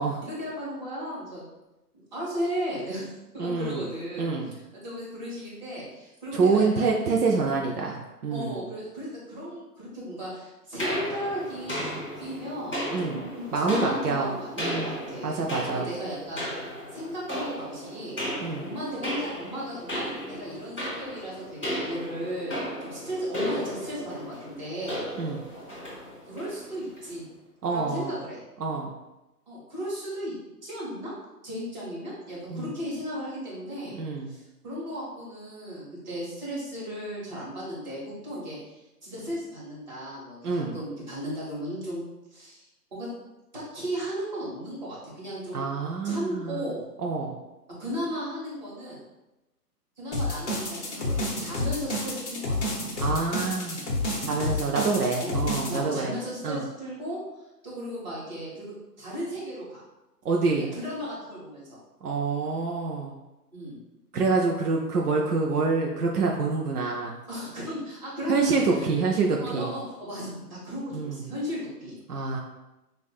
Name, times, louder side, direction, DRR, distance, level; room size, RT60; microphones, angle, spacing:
voice 1, 0.2-1.4 1.9-6.9 8.3-16.4 16.9-18.2 18.6-25.2 26.2-27.3 27.7-28.4 29.5-30.3 30.6-31.1 31.4-34.0 34.3-38.6 39.0-42.0 42.3-42.7 42.9-43.1 43.5-45.6 46.0-46.8 47.8-49.0 50.0-52.8 55.2-55.4 55.7-57.2 57.6-59.8 60.7-61.8 63.5-63.8 67.3-69.0 69.4-72.0, equal, 25° right, -7 dB, 1.2 m, -35 dB
voice 2, 3.4-3.8 4.2-4.5 6.3-8.6 12.9-13.2 13.5-14.9 15.2-15.9 18.4-18.7 25.2-25.4 27.6-28.1 28.6-28.9 32.5-32.7 33.9-34.3 40.4-40.7 45.5-46.7 47.0-47.4 53.0-53.8 54.2-56.1 56.4-56.6 60.2-60.7 62.0-63.2 64.1-67.1 68.3-69.7 70.9-71.2 72.1-72.4, right 4 dB, 70° right, 0 dB, 0.6 m, -26 dB
sound 1, 10.8-27.1, equal, 5° right, 0.8 m, -35 dB
sound 2, 50.1-55.8, left 2 dB, 45° left, 0.9 m, -29 dB
5.3 x 2.5 x 2.3 m, 1.0 s
hypercardioid pair, 170°, 49 cm